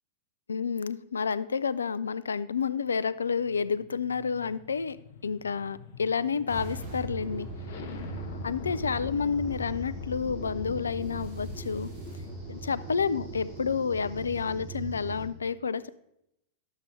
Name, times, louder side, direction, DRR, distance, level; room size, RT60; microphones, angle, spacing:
voice 1, 0.5-5.0 5.2-7.5 8.4-11.9 12.5-15.9, left 5 dB, 75° left, 16 dB, 0.3 m, -30 dB
sound 1, 3.0-13.2, left 4 dB, 55° left, 0.8 m, -44 dB
sound 2, 6.5-15.3, right 3 dB, 60° right, 3.5 m, -40 dB
10.5 x 7.3 x 3.5 m, 0.80 s
figure-of-eight pair, 90°, 0 cm